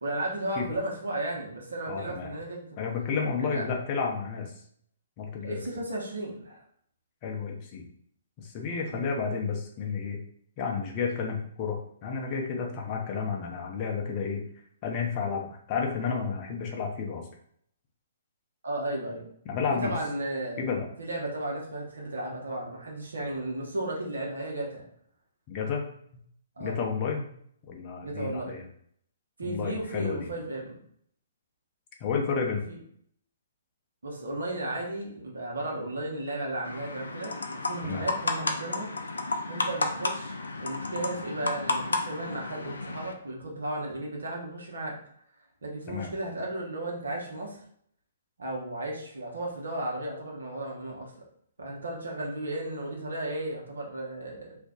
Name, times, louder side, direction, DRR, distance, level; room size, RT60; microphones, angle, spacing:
voice 1, 0.0-2.8 3.4-3.7 5.4-6.6 8.9-9.1 18.6-19.2 19.8-20.7 21.0-24.9 26.6-26.8 28.0-28.6 29.4-30.8 32.7-32.8 34.0-38.9 39.5-45.0 45.6-47.6 48.4-51.1 51.6-54.6, right 1 dB, 75° right, -2 dB, 0.9 m, -34 dB
voice 2, 1.9-2.3 2.8-4.5 5.2-5.6 7.2-7.9 8.4-10.2 10.6-14.4 14.8-17.2 19.5-19.9 20.6-20.9 25.5-25.8 26.6-27.3 27.7-28.6 29.4-30.3 32.0-32.6 37.8-38.0 45.9-46.1, left 5 dB, 35° left, 0 dB, 0.6 m, -31 dB
sound 1, 36.6-43.1, left 3 dB, 75° left, 0.4 m, -32 dB
2.5 x 2.2 x 3.7 m, 0.66 s
figure-of-eight pair, 125°, 0 cm